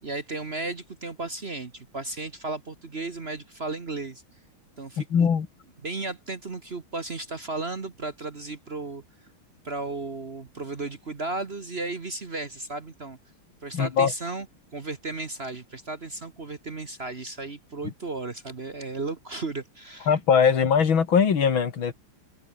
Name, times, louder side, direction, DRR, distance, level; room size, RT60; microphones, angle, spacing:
voice 1, 0.0-4.2 4.8-5.3 5.8-9.3 9.6-13.2 13.6-14.5 14.7-20.1, right 3 dB, 35° right, 1.4 m, -34 dB
voice 2, 5.0-5.5 13.7-14.1 20.1-21.9, left 6 dB, 70° left, 2.9 m, -21 dB
open air
omnidirectional pair, 2.2 m